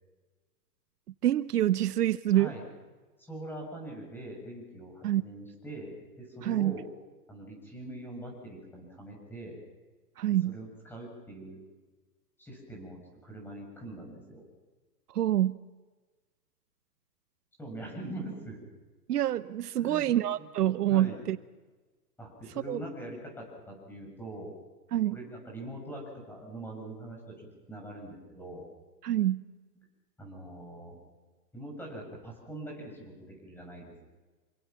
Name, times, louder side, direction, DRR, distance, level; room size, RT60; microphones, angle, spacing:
voice 1, 1.2-2.5 5.0-5.2 6.4-6.7 10.2-10.5 15.1-15.6 19.1-21.4 22.7-22.8 24.9-25.2 29.0-29.4, right 13 dB, 70° right, 14 dB, 0.9 m, -26 dB
voice 2, 2.3-2.7 3.2-6.9 7.3-9.6 10.5-11.6 12.4-14.4 17.6-18.7 19.8-20.5 20.9-21.2 22.2-24.5 25.1-28.7 29.8-29.9 30.2-31.0 31.5-34.1, right 1 dB, 5° left, 0 dB, 7.0 m, -43 dB
27.5 x 24.5 x 6.0 m, 1.3 s
hypercardioid pair, 160°, 48 cm